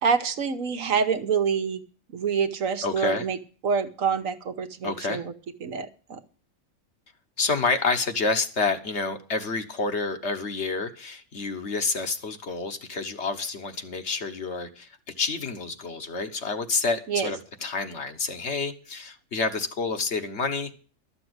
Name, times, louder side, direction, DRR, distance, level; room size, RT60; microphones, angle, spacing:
voice 1, 0.0-1.8 2.1-3.4 3.6-5.3 5.6-6.2 17.1-17.3, right 6 dB, 70° right, 9 dB, 1.4 m, -26 dB
voice 2, 2.8-3.3 4.8-5.2 7.4-20.7, left 4 dB, 50° left, 7 dB, 1.4 m, -28 dB
13.0 x 6.9 x 7.9 m, 0.39 s
omnidirectional pair, 1.5 m